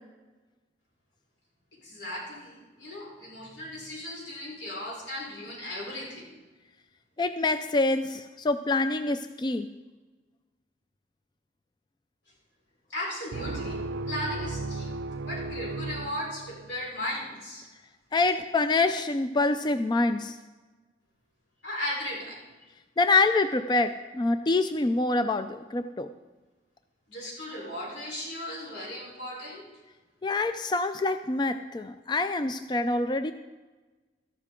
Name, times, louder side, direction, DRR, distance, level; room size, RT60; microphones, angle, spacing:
voice 1, 1.7-6.3 12.9-13.8 14.1-14.9 15.3-17.7 21.6-22.4 27.1-29.6, left 1 dB, 85° left, -3 dB, 4.3 m, -36 dB
voice 2, 7.2-9.7 18.1-20.4 23.0-26.1 30.2-33.3, left 3 dB, 25° left, 9 dB, 0.3 m, -26 dB
sound 1, 13.3-16.9, right 2 dB, 80° right, 0.5 m, -35 dB
13.5 x 12.0 x 3.7 m, 1.2 s
head